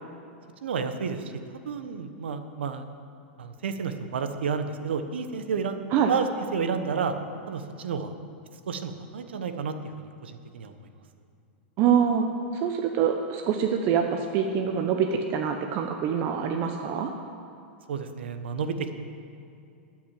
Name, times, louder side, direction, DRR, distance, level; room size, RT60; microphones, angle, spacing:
voice 1, 0.6-1.2 1.6-2.8 3.4-5.8 6.1-7.1 7.5-8.1 8.7-10.7 17.9-18.9, right 6 dB, 85° right, 8 dB, 1.0 m, -31 dB
voice 2, 11.8-17.1, right 7 dB, 45° right, 4 dB, 0.9 m, -25 dB
13.0 x 6.0 x 9.2 m, 2.5 s
hypercardioid pair, 120°, 6 cm